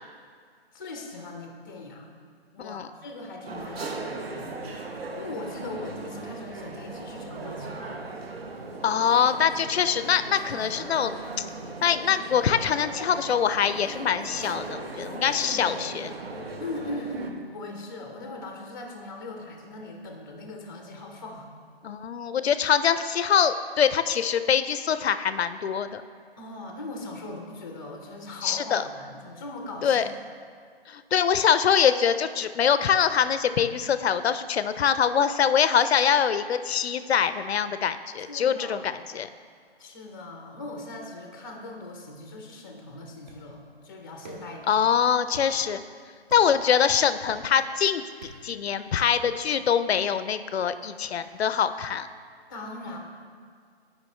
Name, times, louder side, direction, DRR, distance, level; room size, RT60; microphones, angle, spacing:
voice 1, 0.7-2.1 2.5-4.6 5.2-8.2 15.3-15.8 16.6-21.5 26.4-30.0 38.3-39.0 39.8-44.8 52.5-53.0, left 2 dB, 20° left, 2 dB, 0.5 m, -39 dB
sound 1, 3.4-17.3, right 3 dB, 65° right, 0.9 m, -38 dB
voice 2, 8.8-11.2 11.8-16.1 21.8-26.0 28.4-28.8 29.8-30.1 30.9-39.3 44.7-45.8 46.3-48.0 48.4-52.1, left 8 dB, 75° left, 12 dB, 0.5 m, -24 dB
sound 2, 43.3-43.6 44.2-44.6 45.3-45.5 46.3-46.6 47.3-47.7 48.2-48.6, right 2 dB, 40° right, 1.2 m, -46 dB
9.6 x 5.1 x 3.1 m, 2.1 s
figure-of-eight pair, 155°, 32 cm